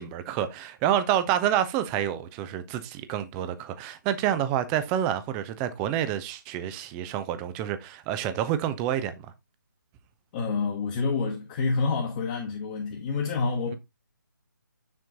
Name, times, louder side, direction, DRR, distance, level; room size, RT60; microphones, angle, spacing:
voice 1, 0.0-9.1, right 10 dB, 5° right, 0.4 m, -28 dB
voice 2, 10.3-13.8, left 4 dB, 20° left, 1.0 m, -28 dB
9.4 x 4.4 x 3.8 m
figure-of-eight pair, 150°, 11 cm